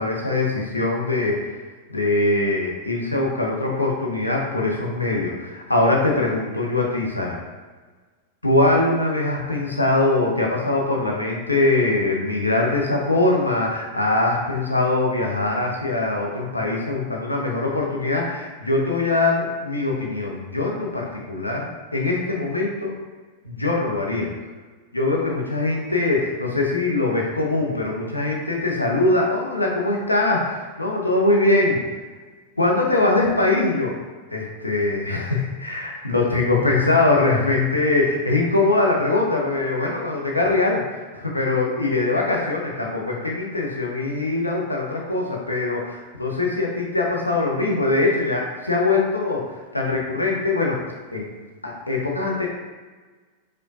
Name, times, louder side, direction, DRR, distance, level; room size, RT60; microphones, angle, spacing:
voice 1, 0.0-1.6 1.9-7.4 8.4-22.9 23.4-24.3 24.9-31.8 32.6-34.0 34.3-50.8 51.1-51.3 51.6-52.5, left 2 dB, 85° left, -1 dB, 0.6 m, -22 dB
4.8 x 2.2 x 2.7 m, 1.3 s
figure-of-eight pair, 90°, 0 cm